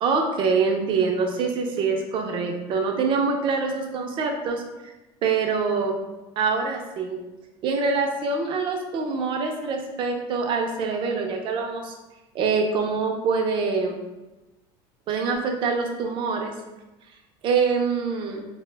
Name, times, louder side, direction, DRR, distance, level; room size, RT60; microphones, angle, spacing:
voice 1, 0.0-4.6 5.2-6.0 6.4-7.2 7.6-11.9 12.3-14.0 15.1-16.5 17.4-18.5, right 4 dB, 45° right, 3 dB, 0.4 m, -25 dB
2.1 x 2.0 x 3.1 m, 1.1 s
supercardioid pair, 120°, 12 cm